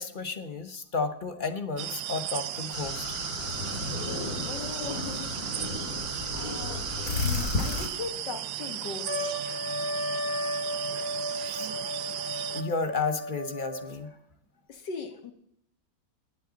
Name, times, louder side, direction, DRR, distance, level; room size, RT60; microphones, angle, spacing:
voice 1, 0.0-3.0 11.5-14.2, left 4 dB, 35° left, 8 dB, 0.9 m, -33 dB
sound 1, 1.8-12.6, right 12 dB, 75° right, 1.2 m, -36 dB
sound 2, 2.7-7.9, left 3 dB, 60° left, 3.2 m, -33 dB
voice 2, 4.5-5.9 6.3-6.9 7.2-9.6 14.7-15.3, left 5 dB, 85° left, 5 dB, 2.1 m, -39 dB
Trumpet, 9.0-14.1, left 1 dB, 5° left, 1.9 m, -34 dB
19.5 x 7.7 x 4.0 m, 0.73 s
omnidirectional pair, 1.8 m